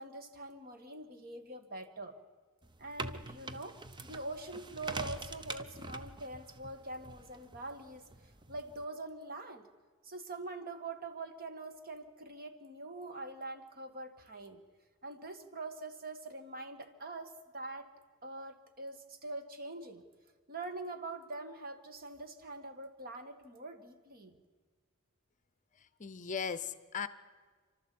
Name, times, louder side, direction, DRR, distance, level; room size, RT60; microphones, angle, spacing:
voice 1, 0.0-2.2 2.8-8.0 8.5-9.7 10.0-14.6 15.0-17.9 18.2-20.0 20.5-24.4, right 2 dB, 45° right, 8 dB, 1.6 m, -44 dB
sound 1, 2.6-8.8, right 2 dB, 20° right, 0.7 m, -45 dB
voice 2, 25.8-27.1, left 6 dB, 35° left, 13 dB, 0.7 m, -38 dB
29.0 x 12.5 x 8.5 m, 1.5 s
head